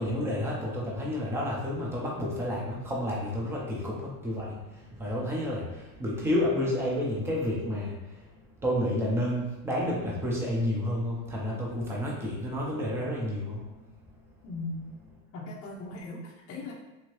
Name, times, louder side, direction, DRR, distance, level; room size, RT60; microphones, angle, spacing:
voice 1, 0.0-8.2 8.6-13.7, left 1 dB, 5° right, -4 dB, 0.3 m, -30 dB
voice 2, 14.4-14.9 15.3-16.7, left 2 dB, 30° left, -2 dB, 0.7 m, -38 dB
2.7 x 2.7 x 2.9 m, 1.0 s
hypercardioid pair, 105°, 49 cm